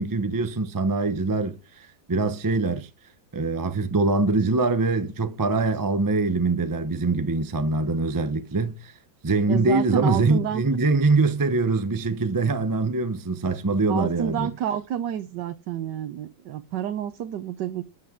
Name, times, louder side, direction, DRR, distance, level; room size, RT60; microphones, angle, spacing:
voice 1, 0.0-2.9 3.3-8.9 9.2-14.5, right 3 dB, 25° right, 0.5 m, -23 dB
voice 2, 9.5-10.6 13.9-17.8, right 10 dB, 80° right, 1.4 m, -29 dB
12.5 x 9.4 x 3.7 m
omnidirectional pair, 1.9 m